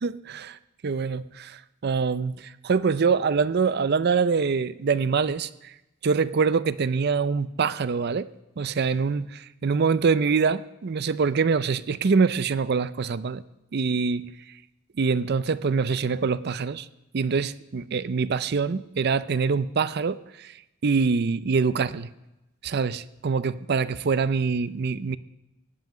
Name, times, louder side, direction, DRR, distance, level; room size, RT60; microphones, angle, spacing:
voice 1, 0.0-0.6 0.8-5.7 6.0-8.3 8.6-13.4 13.7-14.3 15.0-16.9 17.1-20.5 20.8-22.1 22.6-25.2, right 5 dB, 50° right, 16 dB, 0.5 m, -24 dB
16.5 x 5.8 x 9.1 m, 0.95 s
head